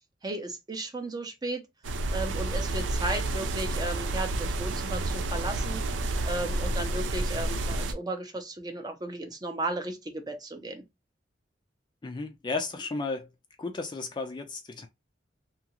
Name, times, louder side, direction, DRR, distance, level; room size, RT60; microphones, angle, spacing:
voice 1, 0.2-1.6 2.1-5.8 6.2-10.8, right 2 dB, 20° right, 0.6 m, -35 dB
sound 1, 1.8-7.9, right 2 dB, 75° right, 0.4 m, -30 dB
voice 2, 12.0-13.3 13.6-14.9, left 3 dB, 25° left, 0.4 m, -34 dB
2.8 x 2.4 x 2.8 m
head